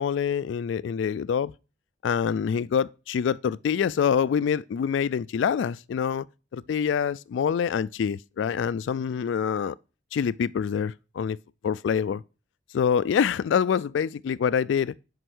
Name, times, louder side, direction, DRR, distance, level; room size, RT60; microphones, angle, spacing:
voice 1, 0.0-1.5 2.0-6.3 6.5-9.7 10.1-11.4 11.6-12.2 12.7-14.9, left 7 dB, 90° left, 0.3 m, -25 dB
7.9 x 5.4 x 6.0 m
head